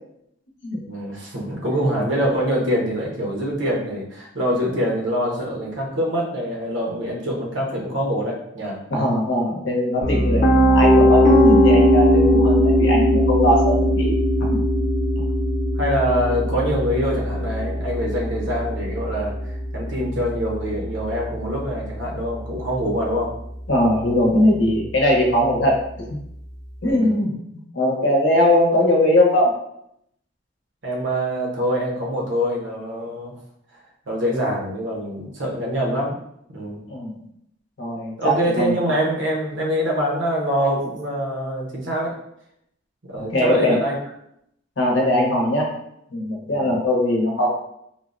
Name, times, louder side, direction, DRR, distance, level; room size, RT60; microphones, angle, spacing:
voice 1, 0.8-8.8 11.4-11.7 15.8-23.3 26.8-27.2 30.8-33.3 34.1-36.2 36.5-36.8 38.2-42.2 43.0-44.0 46.5-46.8, equal, 80° right, -2 dB, 0.8 m, -24 dB
voice 2, 8.9-14.1 14.5-14.6 15.2-15.3 23.7-26.2 26.8-27.3 27.7-29.5 36.9-37.2 37.8-38.8 43.2-43.8 44.8-45.7 46.1-47.5, left 1 dB, 90° left, -1 dB, 0.8 m, -20 dB
Piano, 10.0-21.9, equal, 40° left, 0.6 m, -19 dB
3.6 x 2.0 x 2.4 m, 0.75 s
head